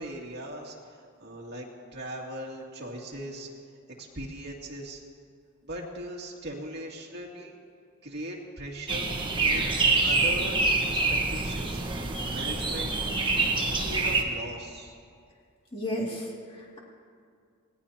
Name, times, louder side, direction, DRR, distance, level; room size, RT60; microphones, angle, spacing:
voice 1, 0.0-3.5 3.9-5.0 5.6-7.6 8.0-9.1 9.5-9.7 10.0-11.8 12.3-13.0 13.7-15.0, right 1 dB, 50° right, -2 dB, 2.4 m, -39 dB
sound 1, 8.9-14.2, right 3 dB, 25° right, 1.3 m, -26 dB
voice 2, 15.7-16.8, equal, 25° left, -4 dB, 2.4 m, -33 dB
25.0 x 18.0 x 2.9 m, 2.2 s
head